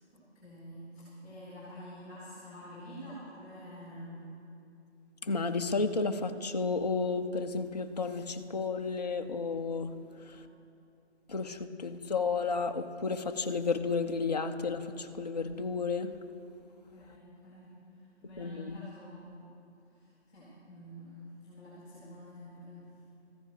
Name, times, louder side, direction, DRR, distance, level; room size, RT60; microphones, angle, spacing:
voice 1, 0.1-4.3 10.0-10.5 16.9-19.4 19.9-21.1 21.4-22.9, equal, 10° left, -8 dB, 2.9 m, -48 dB
voice 2, 5.2-10.0 10.2-10.4 11.3-16.1 18.4-18.8, left 4 dB, 35° left, 6 dB, 0.5 m, -32 dB
14.0 x 10.5 x 6.0 m, 2.7 s
figure-of-eight pair, 155°, 35 cm